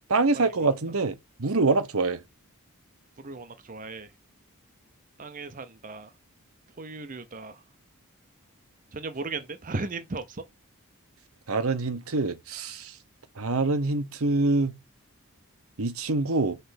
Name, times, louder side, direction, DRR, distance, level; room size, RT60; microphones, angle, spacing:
voice 1, 0.1-2.2 11.5-12.9 13.4-14.7 15.8-16.6, right 3 dB, 70° right, 1.0 m, -25 dB
voice 2, 3.2-4.1 5.2-6.1 6.8-7.6 8.9-10.4, right 3 dB, 35° right, 0.7 m, -36 dB
5.5 x 3.3 x 5.7 m
head